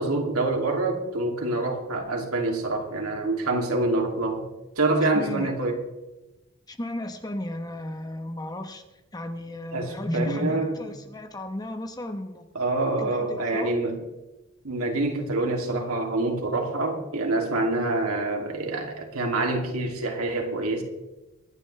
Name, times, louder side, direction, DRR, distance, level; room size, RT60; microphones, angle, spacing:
voice 1, 0.0-4.5 4.8-5.8 9.7-10.8 12.5-14.0 14.6-20.8, right 2 dB, 85° right, 1 dB, 2.7 m, -26 dB
voice 2, 5.1-5.6 6.7-8.8 9.1-12.5 13.0-13.8, left 1 dB, 20° left, 7 dB, 1.0 m, -34 dB
24.0 x 10.5 x 3.4 m, 1.0 s
head